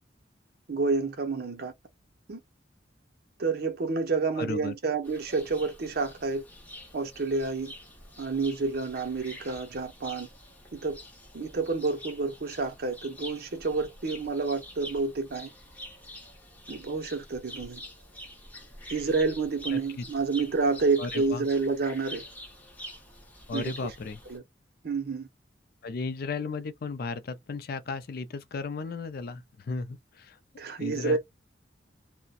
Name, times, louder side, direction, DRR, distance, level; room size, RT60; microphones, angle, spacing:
voice 1, 0.7-1.7 2.3-2.4 3.4-6.4 6.9-7.7 8.2-10.3 10.7-11.0 11.3-15.5 16.7-17.8 18.9-22.2 23.5-23.7 24.3-24.4 24.8-25.3 30.6-31.2, right 4 dB, 60° right, 0.6 m, -29 dB
voice 2, 4.4-4.8 19.7-20.1 21.0-21.4 23.5-24.2 25.8-30.4 30.8-31.2, left 4 dB, 55° left, 0.4 m, -35 dB
sound 1, 5.0-24.4, equal, 10° left, 0.8 m, -46 dB
2.6 x 2.1 x 2.3 m
head